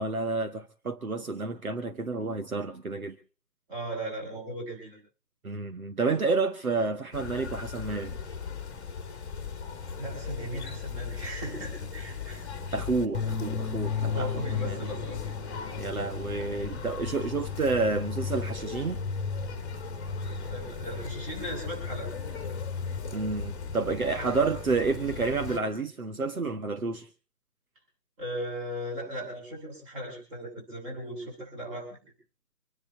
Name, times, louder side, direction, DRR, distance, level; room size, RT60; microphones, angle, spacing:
voice 1, 0.0-3.2 5.4-8.2 12.7-14.3 14.6-14.8 15.8-19.0 23.1-27.1, right 3 dB, 60° right, 1.6 m, -30 dB
voice 2, 3.7-5.0 10.0-12.4 14.1-15.2 20.1-22.1 28.2-32.0, right 1 dB, 20° right, 7.8 m, -37 dB
sound 1, 7.1-25.6, left 6 dB, 15° left, 2.3 m, -35 dB
26.5 x 10.0 x 4.3 m
figure-of-eight pair, 155°, 47 cm